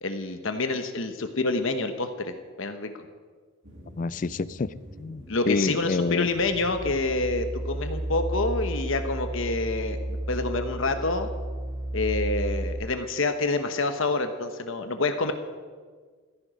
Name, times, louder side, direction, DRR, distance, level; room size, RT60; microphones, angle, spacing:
voice 1, 0.0-2.9 5.3-11.3 11.9-15.3, left 3 dB, 70° left, 7 dB, 1.1 m, -27 dB
sound 1, 3.6-8.2, equal, 60° right, 3.0 m, -45 dB
voice 2, 4.0-6.3, left 4 dB, 35° left, 17 dB, 0.3 m, -28 dB
sound 2, 6.8-12.7, right 1 dB, 15° right, 2.1 m, -32 dB
15.5 x 14.5 x 5.1 m, 1.6 s
head